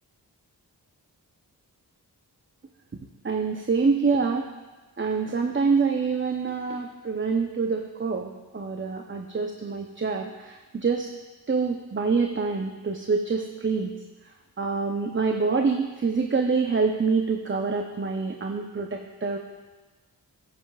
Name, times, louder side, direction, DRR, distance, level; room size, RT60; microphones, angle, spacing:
voice 1, 3.2-4.5 5.0-11.1 11.5-13.9 14.6-19.4, right 4 dB, 30° right, 3 dB, 0.7 m, -26 dB
14.5 x 10.0 x 2.4 m, 1.2 s
cardioid pair, 60°, 39 cm